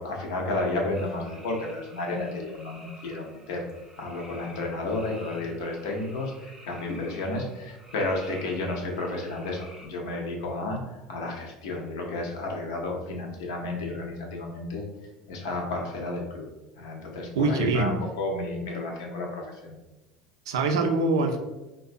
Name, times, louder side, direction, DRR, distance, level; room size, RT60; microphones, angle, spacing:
voice 1, 0.0-3.6 4.0-10.8 11.1-14.9 15.3-16.5 16.8-19.8, left 2 dB, 70° left, 0 dB, 0.6 m, -32 dB
sound 1, 0.9-9.9, equal, 20° right, 0.6 m, -50 dB
voice 2, 17.3-18.0 20.5-21.4, right 3 dB, 75° right, 5 dB, 0.3 m, -24 dB
2.5 x 2.1 x 2.5 m, 1.0 s
hypercardioid pair, 75°, 3 cm